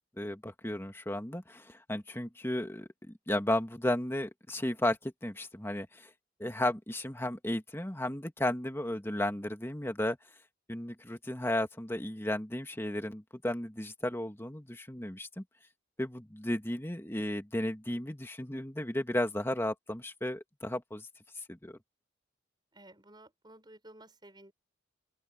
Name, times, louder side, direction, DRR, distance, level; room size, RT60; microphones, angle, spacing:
voice 1, 0.2-6.1 6.4-10.2 10.7-15.4 16.0-21.1 21.5-21.8, left 1 dB, 10° left, 1.9 m, -34 dB
voice 2, 22.7-24.5, right 1 dB, 20° right, 6.3 m, -54 dB
open air
head